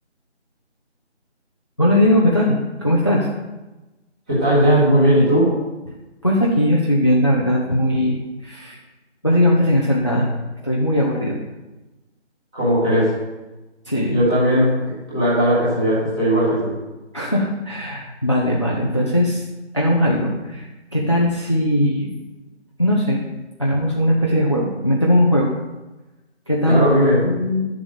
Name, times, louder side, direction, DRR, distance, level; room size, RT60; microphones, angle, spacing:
voice 1, 1.8-3.3 6.2-8.8 9.2-10.4 10.6-11.4 13.9-14.2 17.1-19.4 19.7-22.1 22.8-23.2 23.6-25.5 26.5-26.8 27.2-27.7, left 1 dB, 25° left, -1 dB, 0.7 m, -19 dB
voice 2, 4.3-5.5 12.5-13.1 14.1-16.7 26.6-27.2, equal, 5° right, -11 dB, 1.5 m, -17 dB
11.5 x 7.2 x 5.1 m, 1.1 s
figure-of-eight pair, 170°, 35 cm